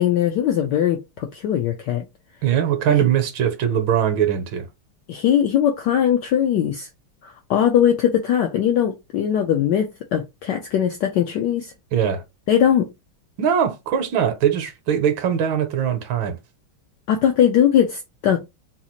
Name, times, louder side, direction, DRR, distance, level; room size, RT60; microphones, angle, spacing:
voice 1, 0.0-2.1 5.1-6.9 7.2-11.7 12.5-12.9 17.1-18.4, left 9 dB, 80° left, 1.0 m, -20 dB
voice 2, 2.4-4.7 11.9-12.2 13.4-16.4, right 9 dB, 70° right, 1.3 m, -21 dB
4.0 x 2.4 x 2.9 m
omnidirectional pair, 2.4 m